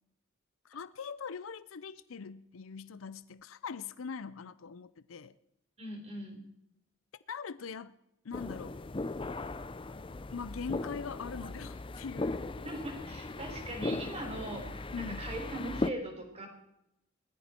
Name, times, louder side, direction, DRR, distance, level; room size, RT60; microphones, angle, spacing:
voice 1, 0.7-5.3 7.3-7.9 8.2-8.8 10.3-12.5 14.9-15.3, left 5 dB, 80° left, 0.6 m, -42 dB
voice 2, 5.8-6.4 12.6-16.5, right 1 dB, 30° right, 4.2 m, -40 dB
sound 1, 8.3-15.9, left 2 dB, 25° left, 0.6 m, -38 dB
20.5 x 13.5 x 4.4 m
head